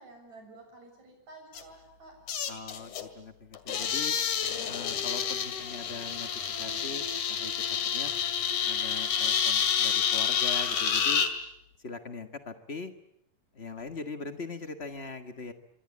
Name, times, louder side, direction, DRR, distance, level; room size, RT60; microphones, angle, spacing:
voice 1, 0.0-2.1, right 2 dB, 55° right, 3 dB, 8.4 m, -51 dB
sound 1, 1.5-1.6 2.3-3.1 3.5-11.3, left 8 dB, 65° left, 3.4 m, -29 dB
voice 2, 2.5-4.1 4.7-6.3 6.6-7.5 7.9-8.1 8.6-11.2 11.8-12.9 13.5-15.5, left 4 dB, 40° left, 8 dB, 0.8 m, -41 dB
26.0 x 25.5 x 8.7 m, 0.78 s
omnidirectional pair, 3.8 m